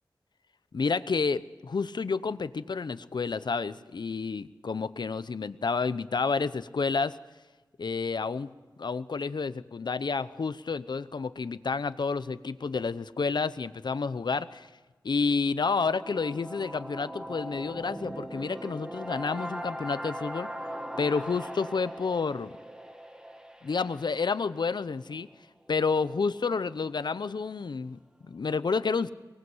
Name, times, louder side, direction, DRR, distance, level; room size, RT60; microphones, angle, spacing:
voice 1, 0.7-7.2 7.8-8.5 8.8-14.7 15.0-20.5 21.0-22.5 23.6-25.3 25.7-29.1, left 4 dB, 75° left, 14 dB, 0.9 m, -30 dB
sound 1, 15.5-25.4, equal, 10° right, 2.0 m, -40 dB
24.0 x 19.0 x 8.0 m, 1.2 s
wide cardioid pair, 65°, 8 cm